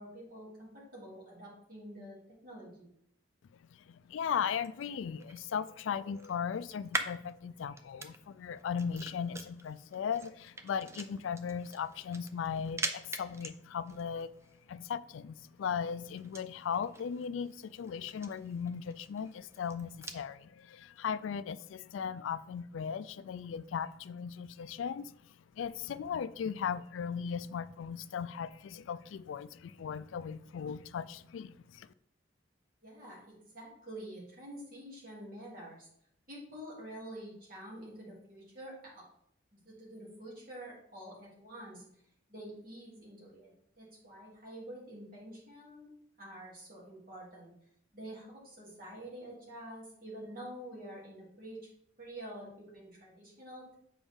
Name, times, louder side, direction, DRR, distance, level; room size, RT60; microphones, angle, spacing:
voice 1, 0.0-2.2 2.4-2.9 32.8-35.9 36.3-39.0 39.5-41.8 42.3-45.9 46.2-47.5 47.9-51.6 52.0-53.8, right 1 dB, 45° right, -5 dB, 2.9 m, -47 dB
voice 2, 3.7-14.3 14.7-25.1 25.6-31.9, left 7 dB, 80° left, 16 dB, 0.3 m, -37 dB
sound 1, 4.4-20.3, right 2 dB, 15° right, 0.4 m, -45 dB
7.0 x 5.0 x 3.6 m, 0.70 s
head